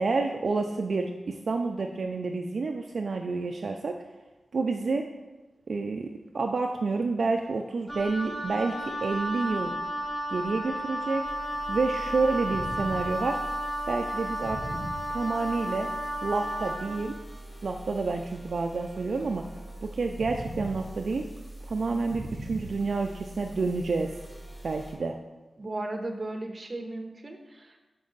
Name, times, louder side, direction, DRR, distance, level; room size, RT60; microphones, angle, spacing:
voice 1, 0.0-4.0 4.5-5.0 5.7-9.7 10.3-11.2 11.7-13.4 13.9-14.6 15.1-15.9 16.2-17.1 17.6-19.4 19.8-21.2 21.6-24.1 24.6-25.1, right 3 dB, 60° right, 3 dB, 0.3 m, -29 dB
Wind instrument woodwind instrument, 7.9-17.0, equal, 5° right, 0.9 m, -33 dB
sound 1, 11.2-24.9, right 1 dB, 15° left, 1.7 m, -42 dB
voice 2, 25.6-27.8, right 2 dB, 35° right, 4 dB, 0.7 m, -36 dB
5.3 x 5.2 x 3.9 m, 1.1 s
wide cardioid pair, 120°, 0 cm